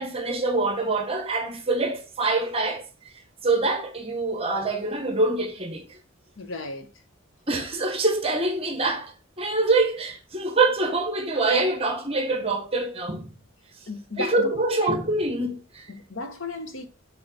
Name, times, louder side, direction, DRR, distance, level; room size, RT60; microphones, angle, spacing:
voice 1, 0.0-2.9 3.4-6.0 7.5-13.3 14.2-15.9, right 2 dB, 30° right, 1.4 m, -25 dB
voice 2, 6.4-6.9 13.9-15.0 15.9-16.8, left 2 dB, 70° left, 1.0 m, -35 dB
6.9 x 4.8 x 4.1 m
head